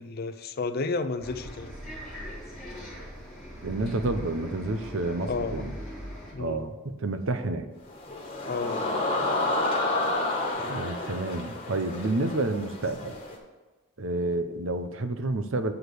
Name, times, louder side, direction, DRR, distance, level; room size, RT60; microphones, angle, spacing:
voice 1, 0.0-1.7 5.3-5.5 6.3-6.6 8.5-8.8, left 3 dB, 45° left, 9 dB, 0.6 m, -31 dB
Bus, 1.2-6.3, equal, ahead, 3.1 m, -40 dB
voice 2, 3.6-5.8 6.4-7.7 10.7-13.2 14.0-15.7, right 2 dB, 70° right, 9 dB, 0.8 m, -29 dB
sound 1, 7.8-13.4, left 2 dB, 25° left, 1.5 m, -30 dB
8.1 x 5.0 x 6.6 m, 1.2 s
head